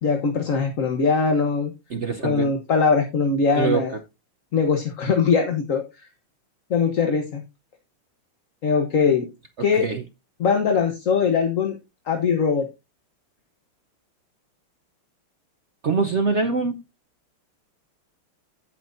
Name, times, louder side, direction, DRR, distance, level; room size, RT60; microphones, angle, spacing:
voice 1, 0.0-1.7 2.2-3.9 4.5-5.8 6.7-7.4 8.6-9.3 9.6-9.8 10.4-11.8 12.1-12.7, left 5 dB, 45° left, 1.2 m, -21 dB
voice 2, 1.9-2.5 3.5-4.0 9.6-10.0 15.8-16.8, right 5 dB, 75° right, 0.6 m, -24 dB
16.0 x 6.0 x 2.6 m
omnidirectional pair, 2.3 m